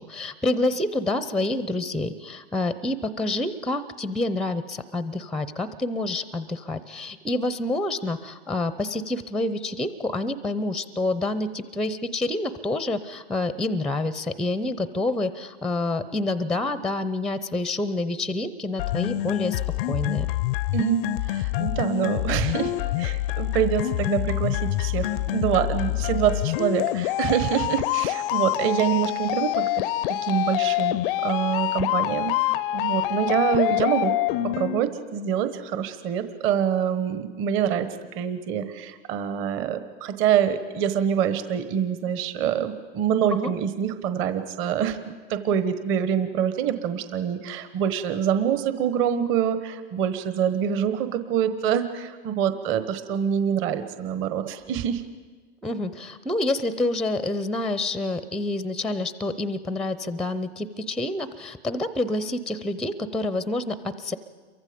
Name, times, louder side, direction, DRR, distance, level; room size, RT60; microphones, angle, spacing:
voice 1, 0.0-19.6 19.9-20.3 43.3-43.5 55.6-64.2, left 2 dB, ahead, 14 dB, 0.6 m, -28 dB
sound 1, 18.8-34.8, left 16 dB, 55° left, 0.6 m, -26 dB
voice 2, 20.7-29.8 30.2-32.3 32.7-34.1 34.4-45.0 45.3-55.0, right 9 dB, 35° right, 10 dB, 1.3 m, -25 dB
28.5 x 23.5 x 5.2 m, 1.4 s
hypercardioid pair, 120°, 34 cm